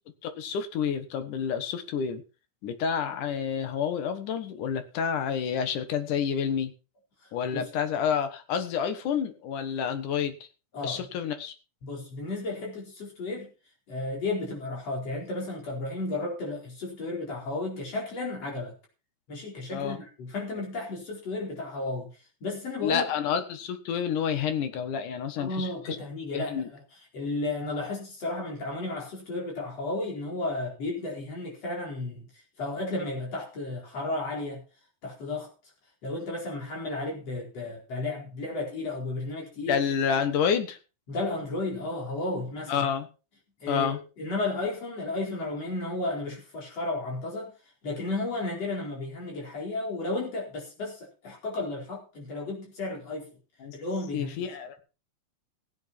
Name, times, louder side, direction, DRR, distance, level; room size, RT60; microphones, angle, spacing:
voice 1, 0.2-2.2 2.6-6.7 7.3-10.4 10.8-11.5 19.7-20.0 22.8-25.7 26.3-26.7 39.6-40.8 42.7-43.1 43.7-44.0 53.6-53.8 54.1-54.8, left 7 dB, 85° left, 2.9 m, -29 dB
voice 2, 10.7-11.1 11.8-13.5 13.9-18.7 19.3-22.1 22.4-23.1 25.4-26.8 27.1-32.3 32.6-34.6 35.0-35.5 36.0-39.8 41.1-42.9 43.6-47.5 47.8-53.3 53.7-54.8, left 2 dB, 55° left, 5.6 m, -33 dB
16.0 x 9.4 x 4.4 m
omnidirectional pair, 3.5 m